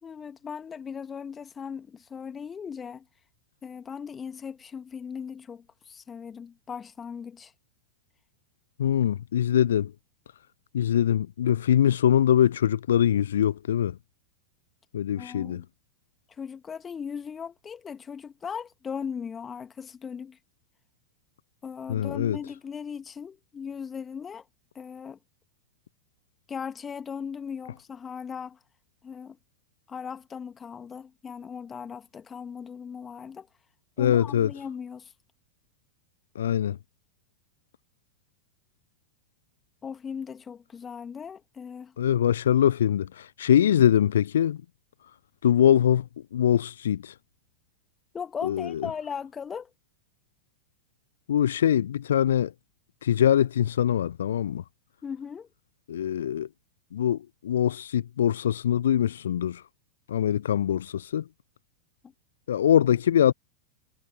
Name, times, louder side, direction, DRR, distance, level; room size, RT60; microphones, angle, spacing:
voice 1, 0.0-3.1 3.6-7.5 15.2-15.6 16.4-20.4 21.6-24.4 24.7-25.2 26.5-28.6 29.0-29.4 29.9-33.5 34.0-35.1 39.8-41.9 48.1-49.7 55.0-55.5, left 6 dB, 20° left, 2.2 m, -38 dB
voice 2, 8.8-9.9 10.7-14.0 14.9-15.6 21.9-22.4 34.0-34.5 36.3-36.8 42.0-44.6 45.4-47.1 48.4-48.9 51.3-52.5 53.0-54.6 55.9-56.5 56.9-59.6 60.1-61.2 62.5-63.3, left 10 dB, 65° left, 0.7 m, -23 dB
figure-of-eight pair, 90°, 0 cm